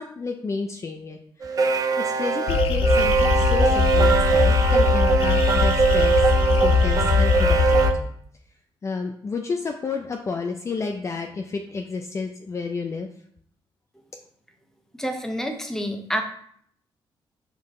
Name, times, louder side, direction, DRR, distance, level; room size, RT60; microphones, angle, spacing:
voice 1, 0.0-1.6 2.0-6.2 6.5-8.1 8.8-13.1, left 4 dB, 30° left, 3 dB, 0.5 m, -31 dB
sound 1, 1.4-7.9, right 5 dB, 40° right, 0.6 m, -21 dB
sound 2, 2.5-7.9, left 6 dB, 85° left, 0.6 m, -21 dB
voice 2, 15.0-16.2, equal, 5° left, 4 dB, 0.9 m, -28 dB
5.6 x 4.7 x 3.7 m, 0.64 s
cardioid pair, 130°, 9 cm